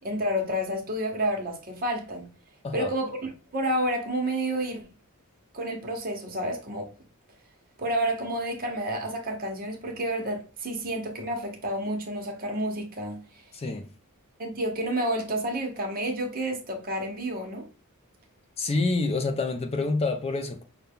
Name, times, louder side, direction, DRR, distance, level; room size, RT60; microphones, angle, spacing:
voice 1, 0.0-2.3 2.7-4.9 5.5-6.9 7.8-13.2 14.4-17.7, right 1 dB, 40° right, 1.1 m, -30 dB
voice 2, 13.5-13.9 18.6-20.6, left 3 dB, 25° left, 0.4 m, -27 dB
5.5 x 2.2 x 3.5 m
head